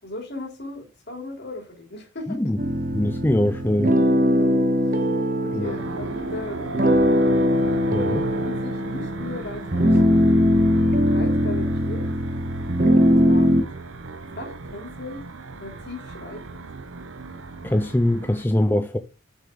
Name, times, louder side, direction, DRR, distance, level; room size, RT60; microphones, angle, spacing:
voice 1, 0.0-2.4 4.2-4.6 5.4-7.3 8.0-8.2 8.5-10.4 11.1-12.1 12.8-13.6 14.4-15.2 15.6-16.6, left 2 dB, 50° left, 3.5 m, -37 dB
voice 2, 2.3-2.6 2.9-4.0 5.5-5.7 7.9-8.2 17.6-19.0, left 1 dB, 10° left, 0.5 m, -22 dB
sound 1, 2.6-13.6, equal, 40° right, 1.3 m, -21 dB
sound 2, 5.6-18.5, right 3 dB, 80° right, 0.9 m, -37 dB
8.3 x 6.6 x 3.9 m
head